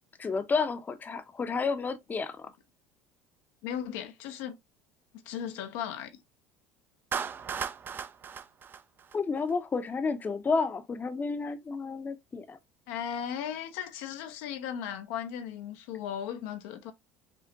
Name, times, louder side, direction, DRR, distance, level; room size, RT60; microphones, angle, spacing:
voice 1, 0.2-2.5 9.1-12.6, left 4 dB, 25° left, 0.6 m, -31 dB
voice 2, 3.6-4.6 5.3-6.2 12.9-16.9, left 9 dB, 75° left, 0.6 m, -36 dB
Clapping, 7.1-9.5, right 7 dB, 30° right, 0.3 m, -36 dB
5.1 x 2.1 x 2.5 m
hypercardioid pair, 80°, 7 cm